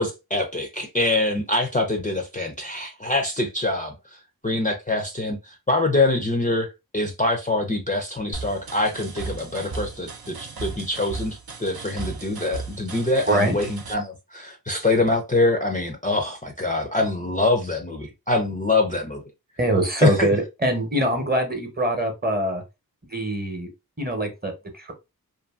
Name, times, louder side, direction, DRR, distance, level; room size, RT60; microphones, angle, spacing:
voice 1, 0.0-3.9 4.4-6.7 6.9-19.2 20.0-20.3, left 2 dB, 20° left, 0.5 m, -24 dB
sound 1, 8.3-13.9, right 4 dB, 70° right, 0.6 m, -36 dB
voice 2, 19.6-22.6 23.1-23.7 24.0-24.9, right 1 dB, 25° right, 0.8 m, -23 dB
2.6 x 2.6 x 2.3 m
wide cardioid pair, 60°, 38 cm